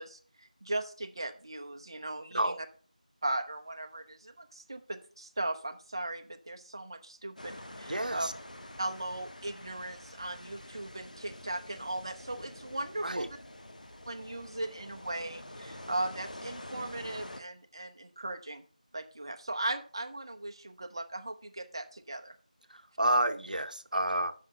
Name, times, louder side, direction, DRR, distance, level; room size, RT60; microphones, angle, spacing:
voice 1, 0.0-2.6 3.2-8.3 8.8-13.4 14.1-18.6 18.9-22.3, right 2 dB, 35° right, 7 dB, 0.7 m, -38 dB
sound 1, 7.4-17.4, left 1 dB, 70° left, 1.2 m, -47 dB
voice 2, 7.9-8.3 13.0-13.3 22.7-24.3, right 1 dB, 75° right, 10 dB, 0.8 m, -30 dB
7.4 x 5.8 x 5.4 m, 0.41 s
figure-of-eight pair, 170°, 4 cm